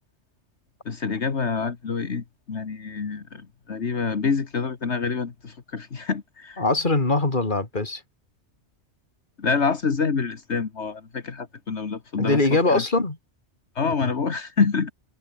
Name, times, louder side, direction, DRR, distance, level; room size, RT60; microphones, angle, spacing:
voice 1, 0.9-6.6 9.4-12.8 13.8-14.9, left 5 dB, 70° left, 2.0 m, -27 dB
voice 2, 6.6-8.0 12.2-13.2 14.0-14.1, left 2 dB, 45° left, 3.3 m, -22 dB
omnidirectional pair, 1.2 m